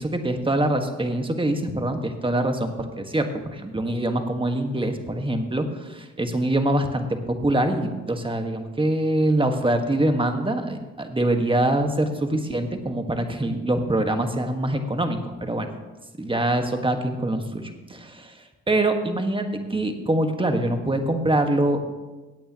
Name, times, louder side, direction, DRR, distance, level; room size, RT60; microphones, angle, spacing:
voice 1, 0.0-15.7 16.2-21.9, right 1 dB, 15° right, 6 dB, 1.5 m, -24 dB
17.0 x 8.5 x 3.0 m, 1.2 s
supercardioid pair, 60°, 31 cm